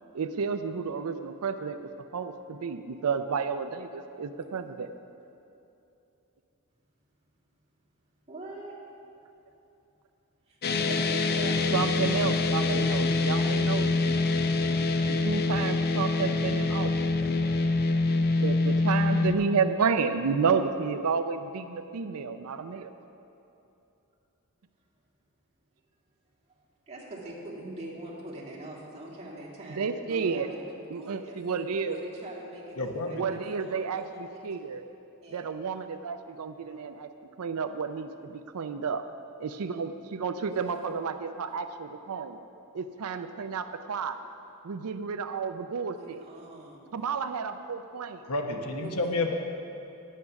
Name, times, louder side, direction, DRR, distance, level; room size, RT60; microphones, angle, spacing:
voice 1, 0.1-4.9 11.7-13.9 15.1-16.9 18.2-22.9 29.7-30.5 30.9-32.0 33.0-34.8 35.3-37.1 37.4-39.0 39.4-42.4 42.7-44.2 44.6-46.2 46.9-48.2, right 5 dB, 75° right, 9 dB, 0.5 m, -31 dB
voice 2, 8.3-8.8 10.5-12.2 13.1-13.2 26.9-30.6 30.9-31.4 31.8-34.4 35.2-35.4 40.4-40.9 45.9-46.9 48.8-49.0, right 1 dB, 30° right, -6 dB, 2.3 m, -43 dB
sound 1, 10.6-19.3, left 3 dB, 45° left, 0.5 m, -25 dB
voice 3, 32.8-33.3 36.6-36.8 48.2-49.3, left 2 dB, 90° left, 3 dB, 1.0 m, -30 dB
11.0 x 8.4 x 5.8 m, 2.9 s
head